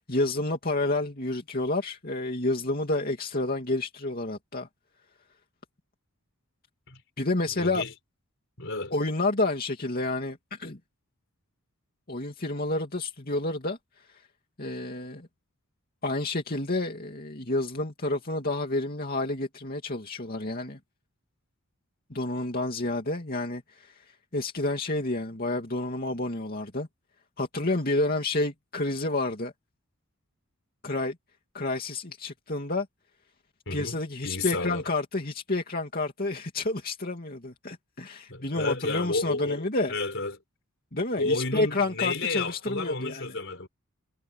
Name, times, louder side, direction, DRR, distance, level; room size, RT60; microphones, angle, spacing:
voice 1, 0.0-4.7 7.2-7.8 8.9-10.8 12.1-14.2 14.6-15.3 16.0-20.8 22.1-26.9 27.4-29.5 30.8-31.2 31.5-32.9 33.7-39.9 40.9-43.2, left 2 dB, 40° left, 2.8 m, -29 dB
voice 2, 7.5-7.9 8.6-8.9 33.7-34.0 34.2-34.8 38.3-40.4 41.2-43.7, left 3 dB, 55° left, 4.5 m, -31 dB
head